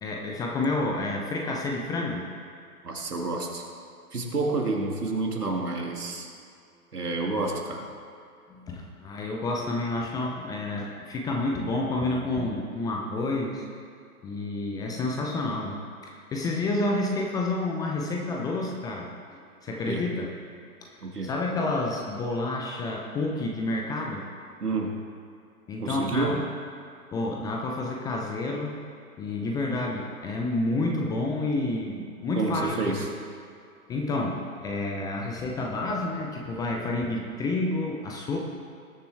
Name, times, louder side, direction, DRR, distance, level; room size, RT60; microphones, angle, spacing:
voice 1, 0.0-2.3 8.6-13.7 14.2-19.1 19.6-20.3 20.8-24.2 25.7-26.4 27.1-28.8 29.2-33.1 33.9-38.4, left 2 dB, 10° left, -1 dB, 0.5 m, -29 dB
voice 2, 2.8-3.7 4.1-6.3 6.9-7.9 19.9-20.0 21.0-21.3 24.6-25.0 25.8-26.4 32.3-33.1, right 3 dB, 85° right, 1 dB, 2.0 m, -29 dB
19.5 x 6.8 x 3.4 m, 2.5 s
figure-of-eight pair, 115°, 45 cm